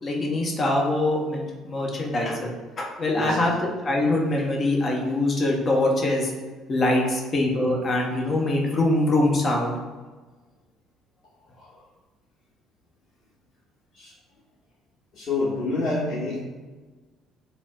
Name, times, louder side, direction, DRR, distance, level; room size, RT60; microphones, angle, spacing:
voice 1, 0.0-6.3 6.7-9.8, left 2 dB, 35° left, -1 dB, 0.7 m, -23 dB
voice 2, 15.1-16.4, left 2 dB, 55° left, -7 dB, 1.3 m, -27 dB
5.0 x 2.0 x 2.3 m, 1.3 s
figure-of-eight pair, 50°, 0 cm